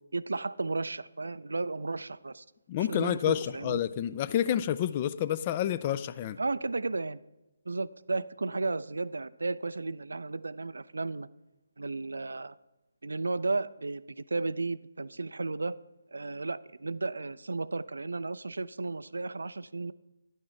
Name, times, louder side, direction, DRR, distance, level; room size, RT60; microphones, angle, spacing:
voice 1, 0.1-2.4 2.9-3.8 6.4-7.2 7.7-11.3 11.8-12.6 13.0-15.8 16.1-19.9, right 3 dB, 70° right, 0.3 m, -34 dB
voice 2, 2.7-6.4, left 11 dB, 25° left, 0.3 m, -29 dB
10.5 x 6.4 x 4.4 m
figure-of-eight pair, 145°, 0 cm